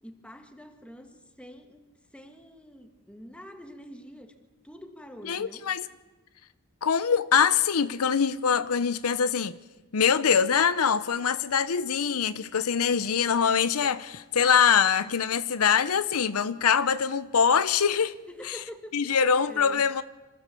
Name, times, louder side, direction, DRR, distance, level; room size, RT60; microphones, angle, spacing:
voice 1, 0.0-1.8 2.1-4.3 4.6-5.6 18.3-19.8, equal, 5° left, 1.6 m, -46 dB
voice 2, 5.3-5.8 6.8-9.6 9.9-18.1 18.5-18.6 18.9-20.0, left 7 dB, 80° left, 0.7 m, -24 dB
26.0 x 14.5 x 6.9 m
head